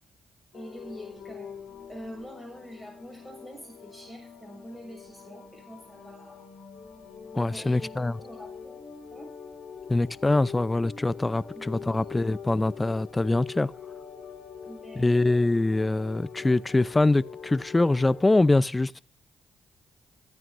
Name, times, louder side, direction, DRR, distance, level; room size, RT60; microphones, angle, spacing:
sound 1, 0.5-18.5, left 6 dB, 75° left, 4.0 m, -44 dB
voice 1, 0.5-1.5 1.9-6.5 7.5-8.8 9.1-9.3 11.5-12.2 14.6-15.3, equal, ahead, 6.6 m, -45 dB
voice 2, 7.3-8.2 9.9-13.7 15.0-19.0, left 2 dB, 20° left, 0.7 m, -24 dB
26.5 x 9.5 x 2.7 m
hypercardioid pair, 50°, 0 cm